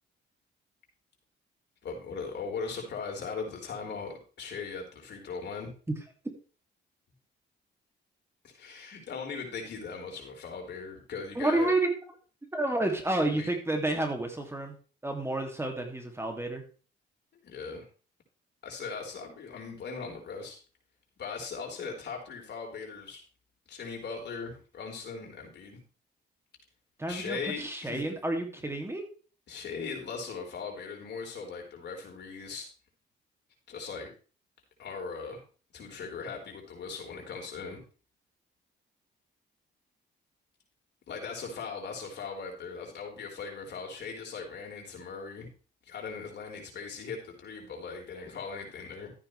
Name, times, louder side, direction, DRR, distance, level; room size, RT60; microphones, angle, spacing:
voice 1, 1.8-5.7 8.4-11.7 13.3-13.5 17.4-17.9 18.6-20.6 21.2-23.2 23.7-25.8 27.1-28.1 29.5-32.7 33.7-34.1 34.8-35.4 35.7-37.8 41.1-45.5 45.8-49.1, left 5 dB, 60° left, 1 dB, 4.7 m, -39 dB
voice 2, 11.3-11.9 12.5-14.8 15.0-16.6 27.0-29.1, right 2 dB, 10° right, 4 dB, 2.6 m, -30 dB
13.5 x 9.2 x 3.4 m, 0.36 s
cardioid pair, 90°, 20 cm